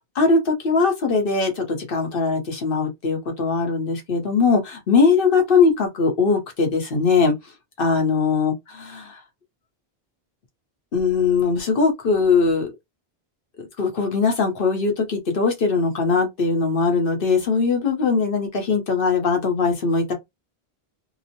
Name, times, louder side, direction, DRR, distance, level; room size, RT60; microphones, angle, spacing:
voice 1, 0.1-7.3 7.8-9.2 10.9-12.7 13.8-20.1, left 4 dB, 65° left, 1.0 m, -20 dB
2.9 x 2.0 x 2.7 m
omnidirectional pair, 1.0 m